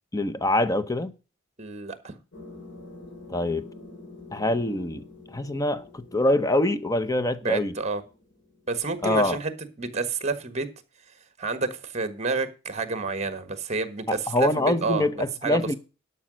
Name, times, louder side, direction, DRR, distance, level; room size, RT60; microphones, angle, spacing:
voice 1, 0.1-1.1 3.3-3.7 4.3-5.0 5.3-7.8 9.0-9.4 14.1-15.7, left 1 dB, 15° left, 0.7 m, -24 dB
voice 2, 1.6-2.1 7.4-8.0 8.7-9.5 9.8-10.7 11.4-15.8, right 3 dB, 35° right, 1.3 m, -29 dB
sound 1, 2.3-9.5, left 3 dB, 60° left, 3.9 m, -47 dB
11.5 x 5.6 x 6.2 m
head